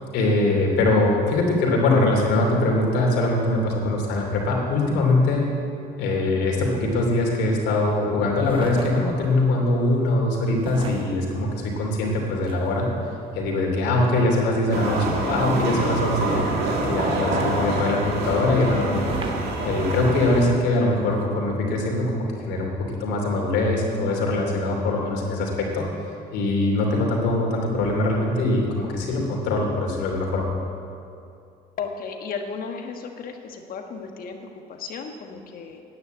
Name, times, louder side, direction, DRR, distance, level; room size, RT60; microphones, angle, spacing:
voice 1, 0.1-5.4 6.0-12.9 13.3-19.0 19.3-25.8 26.3-30.5, left 2 dB, 85° left, -1 dB, 2.9 m, -22 dB
sound 1, 8.4-9.4 10.6-12.9 15.3-17.2 19.0-20.2 21.1-21.3, right 3 dB, 30° right, 1.1 m, -38 dB
sound 2, 14.7-20.5, right 2 dB, 70° right, 2.2 m, -26 dB
voice 2, 31.8-35.8, left 5 dB, 60° left, 4 dB, 1.4 m, -34 dB
9.7 x 9.6 x 8.0 m, 2.6 s
cardioid pair, 110°, 17 cm